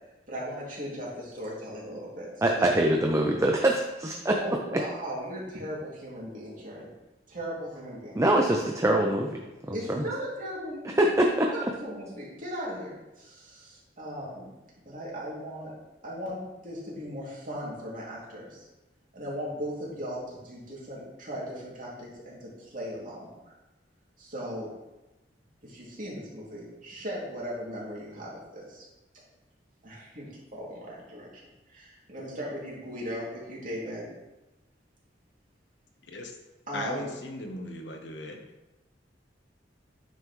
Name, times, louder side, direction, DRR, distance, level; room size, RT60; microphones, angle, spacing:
voice 1, 0.3-2.9 4.3-6.9 7.3-8.2 9.7-12.9 13.2-14.5 14.8-15.7 16.0-18.7 19.1-23.5 24.2-24.7 25.6-28.8 29.8-31.4 31.7-34.1 36.7-37.1, equal, 45° right, -5 dB, 2.6 m, -38 dB
voice 2, 2.4-4.4 8.2-9.4 9.7-10.0 11.0-11.5, right 1 dB, 15° right, 1 dB, 0.5 m, -24 dB
voice 3, 36.7-38.4, left 2 dB, 70° left, 3 dB, 1.0 m, -37 dB
9.2 x 5.6 x 3.1 m, 1.0 s
head